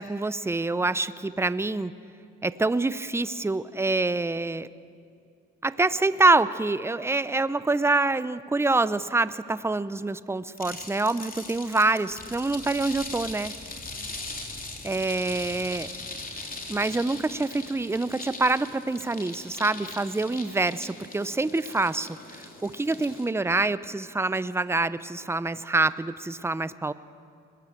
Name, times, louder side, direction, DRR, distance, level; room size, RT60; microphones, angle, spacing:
voice 1, 0.0-1.9 2.4-4.7 5.6-13.5 14.8-15.9 16.7-26.9, right 3 dB, 10° right, 15 dB, 0.7 m, -26 dB
sound 1, 10.6-23.3, left 3 dB, 30° left, 3.6 m, -40 dB
23.0 x 20.5 x 7.8 m, 2.5 s
cardioid pair, 90°, 30 cm